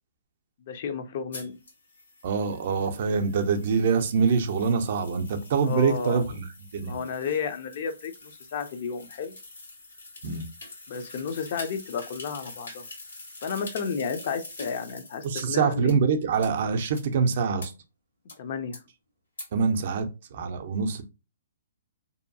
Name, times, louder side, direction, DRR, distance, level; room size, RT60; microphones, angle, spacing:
voice 1, 0.6-1.6 5.6-6.2 6.8-9.3 10.9-12.9 13.4-16.0 18.4-18.8, left 6 dB, 50° left, 0.4 m, -32 dB
sound 1, 1.3-15.4 15.9-16.0 16.4-16.5 17.0-17.1 17.6-17.7 18.3-18.4 18.7-18.8 19.4-19.5, left 2 dB, 85° left, 1.4 m, -45 dB
voice 2, 2.2-6.5 6.7-7.0 10.2-10.5 15.2-17.7 19.5-21.0, right 5 dB, 55° right, 0.4 m, -25 dB
2.6 x 2.2 x 2.6 m
hypercardioid pair, 145°, 0 cm